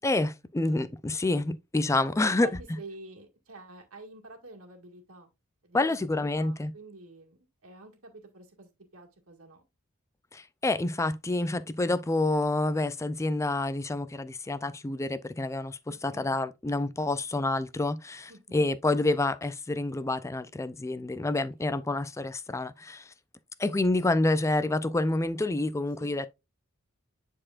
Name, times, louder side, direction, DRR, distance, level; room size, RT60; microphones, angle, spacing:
voice 1, 0.0-2.5 5.7-6.7 10.3-23.1 23.6-26.3, left 2 dB, 15° left, 0.4 m, -28 dB
voice 2, 2.1-2.5 2.8-5.3 5.6-9.6 15.9-16.4 18.3-18.6 21.6-21.9 26.0-26.2, right 3 dB, 75° right, 1.9 m, -48 dB
9.8 x 4.3 x 2.5 m
head